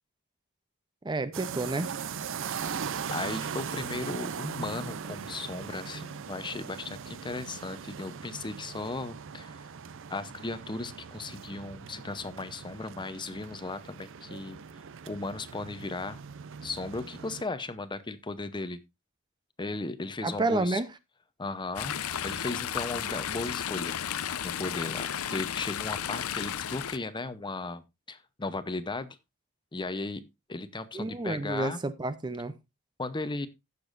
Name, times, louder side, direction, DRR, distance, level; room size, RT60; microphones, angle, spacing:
voice 1, 1.0-1.9 20.2-20.9 30.9-32.5, right 2 dB, 20° right, 0.6 m, -30 dB
sound 1, 1.3-17.4, right 6 dB, 60° right, 0.6 m, -40 dB
voice 2, 3.1-9.7 10.1-14.6 15.1-16.2 16.6-18.8 19.6-20.8 21.4-24.0 24.4-27.8 28.1-29.2 29.7-30.2 30.5-31.8 33.0-33.5, left 3 dB, 20° left, 0.7 m, -36 dB
Chatter / Stream, 21.8-27.0, left 9 dB, 75° left, 0.6 m, -33 dB
16.0 x 6.9 x 2.5 m
head